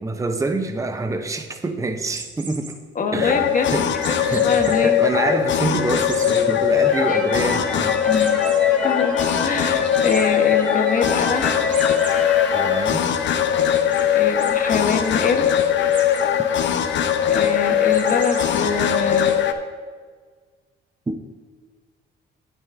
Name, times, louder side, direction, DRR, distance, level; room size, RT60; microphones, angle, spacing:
voice 1, 0.0-2.7 3.1-8.0 12.5-13.1 21.1-21.2, right 2 dB, 15° right, 6 dB, 0.7 m, -26 dB
sound 1, 2.1-2.7 4.0-4.7 5.2-5.3 5.9-6.4 6.9-7.0 7.3-7.4 8.2-8.6 10.0-10.2 11.7-12.1 12.6-13.2 13.9-14.0 14.4-14.5 14.8-15.1 15.9-16.3 17.9-18.6, right 4 dB, 40° right, 1.5 m, -36 dB
voice 2, 2.9-5.0 7.1-7.2 8.0-11.6 13.7-15.5 17.3-19.4, left 5 dB, 45° left, 5 dB, 1.2 m, -25 dB
sound 2, 3.2-19.5, left 9 dB, 65° left, 0.7 m, -20 dB
sound 3, 6.7-13.7, left 1 dB, 5° left, 1.5 m, -31 dB
16.0 x 6.3 x 2.6 m, 1.5 s
cardioid pair, 90°, 20 cm